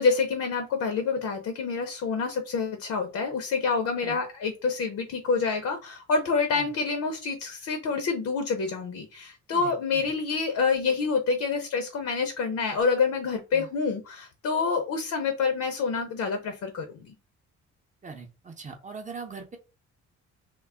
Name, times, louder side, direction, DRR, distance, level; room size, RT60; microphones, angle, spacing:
voice 1, 0.0-17.1, left 4 dB, 65° left, 6 dB, 0.6 m, -27 dB
voice 2, 9.5-10.1 13.5-13.7 18.0-19.6, right 4 dB, 25° right, 4 dB, 0.7 m, -41 dB
2.2 x 2.0 x 3.5 m, 0.30 s
cardioid pair, 90°, 30 cm